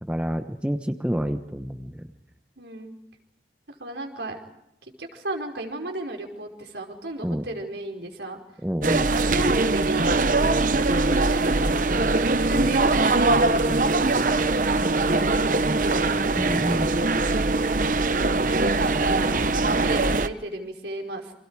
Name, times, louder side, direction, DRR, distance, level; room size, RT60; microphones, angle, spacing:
voice 1, 0.0-2.1 7.2-7.5 8.6-9.1 16.4-16.9, equal, 5° right, 7 dB, 1.1 m, -28 dB
voice 2, 2.6-2.9 3.8-4.4 4.8-8.4 8.9-11.7 12.3-16.1 18.0-21.3, right 2 dB, 85° right, 2 dB, 5.0 m, -34 dB
sound 1, 8.8-20.3, right 3 dB, 45° right, 0.9 m, -22 dB
29.5 x 26.5 x 4.9 m, 0.83 s
head